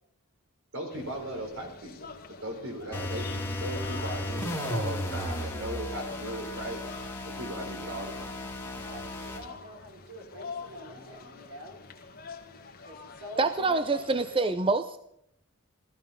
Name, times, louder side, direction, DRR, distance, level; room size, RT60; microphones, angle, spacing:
voice 1, 0.7-1.9 2.4-6.8 7.2-8.4, right 1 dB, 60° right, 3 dB, 4.0 m, -37 dB
sound 1, 0.9-14.4, left 4 dB, 45° left, 1.6 m, -46 dB
sound 2, 2.9-9.5, left 1 dB, 10° left, 2.0 m, -35 dB
voice 2, 8.7-11.8 12.8-14.1, equal, 90° right, 2 dB, 4.1 m, -45 dB
voice 3, 13.4-15.0, right 3 dB, 25° right, 10 dB, 0.5 m, -26 dB
15.5 x 15.0 x 5.6 m, 0.73 s
head